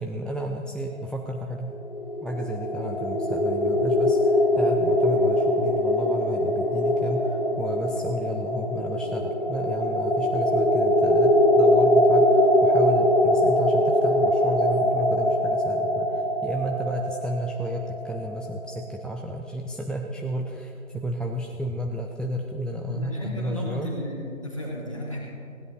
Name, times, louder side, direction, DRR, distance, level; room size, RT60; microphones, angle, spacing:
voice 1, 0.0-1.7 2.2-23.9, equal, ahead, 2 dB, 0.4 m, -32 dB
sound 1, 1.8-18.7, left 1 dB, 40° left, 0.8 m, -22 dB
voice 2, 22.7-25.2, equal, 25° left, -4 dB, 1.8 m, -34 dB
16.5 x 10.5 x 4.2 m, 2.6 s
figure-of-eight pair, 175°, 41 cm